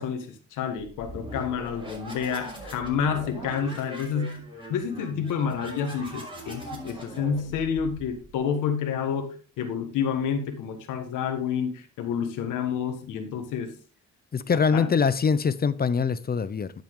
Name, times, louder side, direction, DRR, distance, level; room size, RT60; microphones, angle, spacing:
voice 1, 0.0-13.7 14.7-14.9, left 7 dB, 90° left, 1.7 m, -29 dB
sound 1, 0.7-8.4, right 1 dB, 15° right, 6.1 m, -41 dB
voice 2, 14.3-16.7, left 6 dB, 30° left, 0.7 m, -23 dB
10.5 x 7.5 x 3.7 m
cardioid pair, 90°, 30 cm